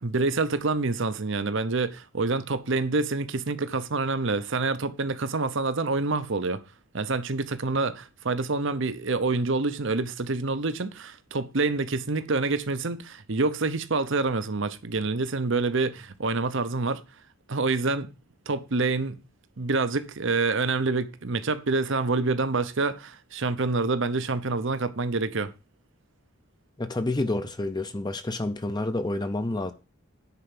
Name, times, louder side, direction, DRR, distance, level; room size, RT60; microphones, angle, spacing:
voice 1, 0.0-6.6 6.9-17.0 17.5-18.1 18.5-19.2 19.6-25.5, right 3 dB, 60° right, 0.9 m, -27 dB
voice 2, 26.8-29.7, left 2 dB, 20° left, 0.6 m, -29 dB
10.0 x 4.6 x 7.7 m
head